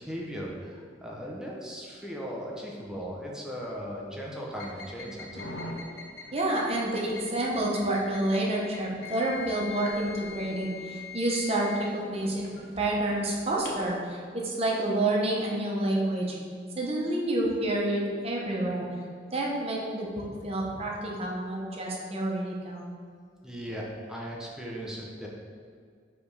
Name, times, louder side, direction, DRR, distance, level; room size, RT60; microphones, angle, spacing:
voice 1, 0.0-5.5 23.4-25.3, equal, 5° right, -3 dB, 0.7 m, -38 dB
sound 1, 4.5-13.9, left 3 dB, 65° left, 0.8 m, -43 dB
voice 2, 6.3-11.7 12.1-16.4 16.8-18.8 19.3-22.9, right 1 dB, 30° right, -3 dB, 0.9 m, -29 dB
5.1 x 3.4 x 5.4 m, 2.1 s
head